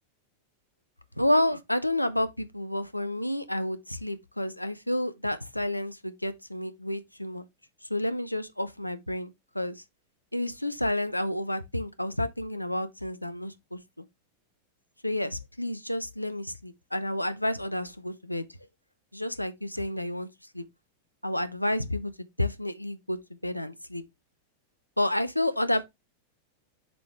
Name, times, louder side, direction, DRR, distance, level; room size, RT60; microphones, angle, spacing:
voice 1, 1.2-7.4 7.9-9.8 10.3-13.8 15.0-18.4 19.1-20.3 20.5-20.6 21.2-24.0 25.0-25.8, left 1 dB, 85° left, 0.6 m, -30 dB
7.0 x 4.8 x 3.2 m
figure-of-eight pair, 90°, 0 cm